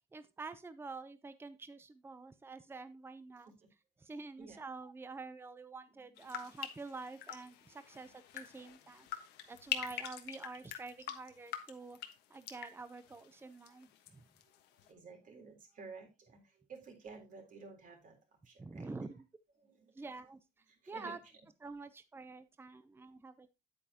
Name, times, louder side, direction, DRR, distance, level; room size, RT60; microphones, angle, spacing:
voice 1, 0.1-3.5 4.0-14.2 18.6-19.2 19.9-20.4 20.9-21.2 21.6-23.5, right 3 dB, 15° right, 12 dB, 0.6 m, -48 dB
voice 2, 5.9-6.6 7.9-8.1 9.3-9.4 14.7-19.1 19.6-20.2 20.7-21.3, right 4 dB, 50° right, 2 dB, 3.7 m, -54 dB
sound 1, 6.2-14.1 14.4-14.9, left 11 dB, 85° left, 1.3 m, -45 dB
9.0 x 8.6 x 2.9 m, 0.24 s
cardioid pair, 110°, 17 cm